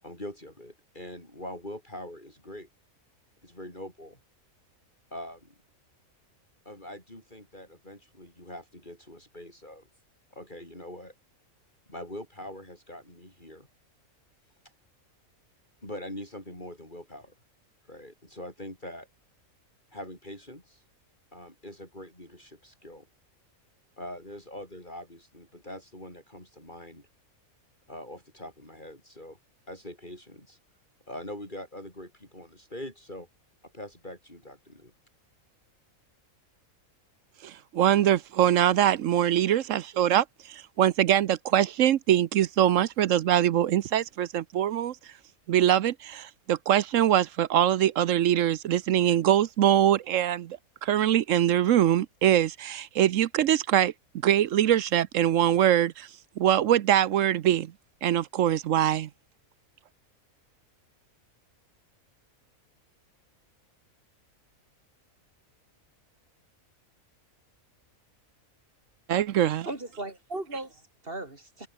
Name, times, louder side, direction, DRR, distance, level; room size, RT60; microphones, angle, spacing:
voice 1, 0.0-2.7 3.4-4.2 5.1-5.5 6.6-9.9 10.3-11.1 11.9-13.7 15.8-17.3 17.9-19.1 19.9-20.8 21.3-23.1 24.0-27.1 27.9-29.4 29.7-30.6 31.1-33.3 33.7-34.9, left 1 dB, 35° left, 8.0 m, -43 dB
voice 2, 37.4-45.0 45.5-53.9 54.2-56.1 56.4-57.7 58.0-59.1 69.1-69.7, right 11 dB, 70° right, 1.0 m, -23 dB
voice 3, 69.7-71.7, right 2 dB, 40° right, 4.3 m, -37 dB
omnidirectional pair, 1.5 m